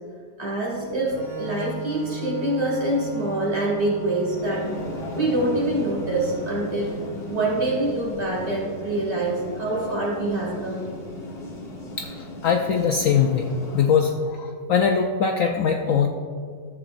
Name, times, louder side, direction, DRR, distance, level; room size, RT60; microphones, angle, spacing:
voice 1, 0.4-4.7 5.1-7.0 7.3-10.9, right 1 dB, 40° right, -5 dB, 2.6 m, -25 dB
sound 1, 0.6-13.9, left 1 dB, 40° left, 1.3 m, -37 dB
Organ, 1.1-8.6, right 5 dB, 75° right, 2.8 m, -40 dB
voice 2, 12.0-13.5 13.7-16.1, left 6 dB, 70° left, 3 dB, 0.8 m, -22 dB
13.5 x 7.5 x 2.5 m, 2.1 s
omnidirectional pair, 1.8 m